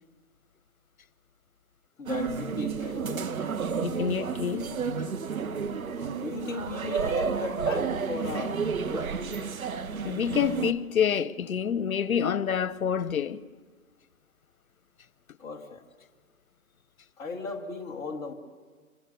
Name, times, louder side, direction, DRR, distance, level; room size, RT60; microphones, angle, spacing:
voice 1, 2.0-3.3 6.1-8.6 8.8-9.4 15.4-15.8 17.2-18.3, left 4 dB, 5° left, 0.9 m, -36 dB
sound 1, 2.1-10.7, right 6 dB, 70° right, 1.6 m, -31 dB
voice 2, 3.8-4.8 10.0-13.4, left 8 dB, 70° left, 1.1 m, -27 dB
26.5 x 24.0 x 6.9 m
hypercardioid pair, 150°, 43 cm